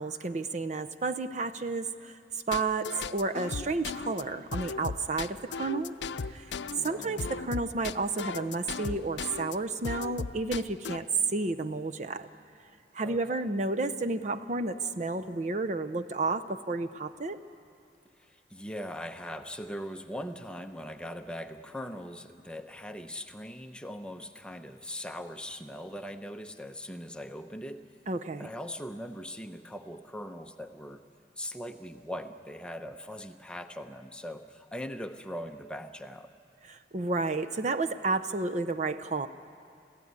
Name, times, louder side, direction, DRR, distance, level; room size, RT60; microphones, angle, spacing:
voice 1, 0.0-2.2 2.5-6.0 6.3-6.5 6.8-12.3 12.9-17.4 28.1-28.5 36.6-39.3, right 3 dB, 40° right, 9 dB, 0.6 m, -31 dB
sound 1, 2.5-9.6 9.8-11.0, left 5 dB, 80° left, 0.6 m, -36 dB
voice 2, 6.8-7.3 13.0-13.5 18.2-27.8 28.4-31.0 31.4-36.3, equal, 5° left, 6 dB, 0.8 m, -40 dB
26.5 x 15.5 x 9.6 m, 2.6 s
head